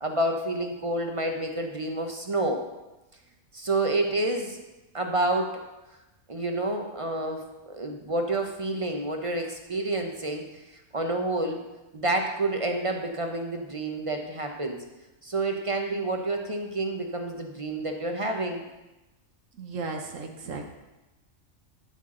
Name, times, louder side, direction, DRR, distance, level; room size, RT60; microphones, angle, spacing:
voice 1, 0.0-2.6 3.5-4.6 4.9-5.5 6.3-10.4 10.9-11.6 11.9-14.8 15.2-18.6, right 2 dB, 30° right, 3 dB, 0.7 m, -29 dB
voice 2, 19.6-20.7, right 3 dB, 70° right, 3 dB, 1.4 m, -35 dB
12.5 x 5.9 x 3.8 m, 1.0 s
omnidirectional pair, 1.4 m